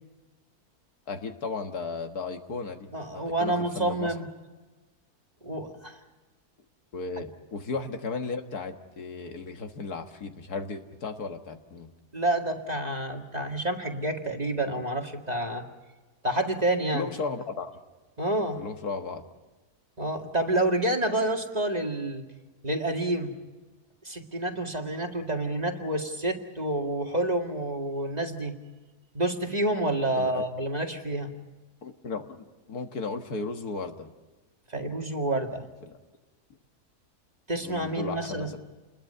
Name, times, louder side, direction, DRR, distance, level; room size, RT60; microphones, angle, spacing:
voice 1, 1.1-4.1 6.9-11.9 16.9-17.7 18.5-19.2 30.2-30.4 31.8-34.1 35.8-36.0 37.6-38.6, left 4 dB, 75° left, 6 dB, 2.1 m, -35 dB
voice 2, 2.9-4.2 5.4-6.0 12.1-15.7 16.2-17.1 18.2-18.6 20.0-22.2 22.6-23.3 24.0-28.5 29.1-31.3 34.7-35.7 37.5-38.5, right 1 dB, 25° right, 2 dB, 2.1 m, -28 dB
29.0 x 21.5 x 5.6 m, 1.2 s
omnidirectional pair, 1.7 m